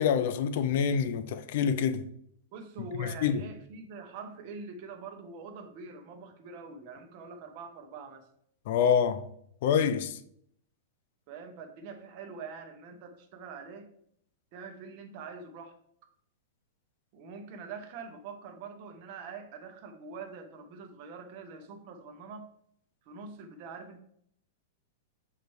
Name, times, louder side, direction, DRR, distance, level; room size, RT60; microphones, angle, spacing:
voice 1, 0.0-2.0 3.0-3.4 8.7-9.2 9.6-10.2, left 7 dB, 45° left, 0.5 m, -26 dB
voice 2, 2.5-8.3 11.3-13.9 14.5-15.8 17.1-22.5 23.1-24.0, right 4 dB, 35° right, 0.8 m, -44 dB
6.6 x 3.2 x 4.6 m
supercardioid pair, 175°, 0 cm